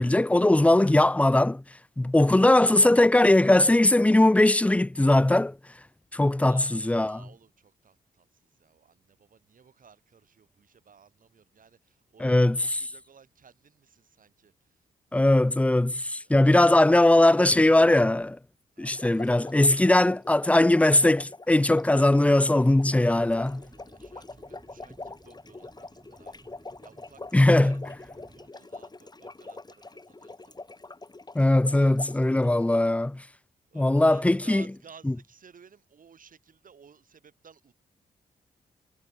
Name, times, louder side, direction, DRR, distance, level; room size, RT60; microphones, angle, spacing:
voice 1, 0.0-1.6 2.0-5.5 6.1-7.2 12.2-12.6 15.1-18.4 18.8-23.5 27.3-27.8 31.3-33.2 33.8-34.6, left 1 dB, 10° left, 0.5 m, -20 dB
voice 2, 6.4-14.8 16.2-16.6 18.7-19.8 23.0-30.8 33.7-37.7, right 6 dB, 60° right, 6.4 m, -56 dB
sound 1, 18.8-32.8, left 3 dB, 25° left, 3.7 m, -44 dB
sound 2, 23.0-28.5, right 2 dB, 20° right, 3.1 m, -56 dB
cardioid pair, 55°, 16 cm